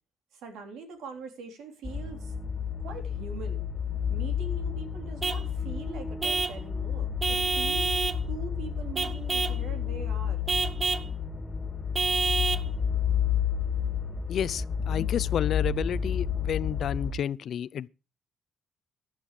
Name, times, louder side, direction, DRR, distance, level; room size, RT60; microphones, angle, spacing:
voice 1, 0.3-2.4 2.8-3.6 4.1-10.4, right 4 dB, 85° right, 3.7 m, -42 dB
sound 1, 1.8-17.1, left 7 dB, 15° left, 3.3 m, -31 dB
Vehicle horn car horn honking / Truck, 5.2-5.5 6.2-6.6 7.2-8.2 9.0-9.6 10.5-11.1 12.0-12.7, right 4 dB, 35° right, 1.1 m, -28 dB
voice 2, 14.3-17.9, left 9 dB, 65° left, 0.6 m, -31 dB
16.5 x 11.0 x 3.3 m
cardioid pair, 90°, 0 cm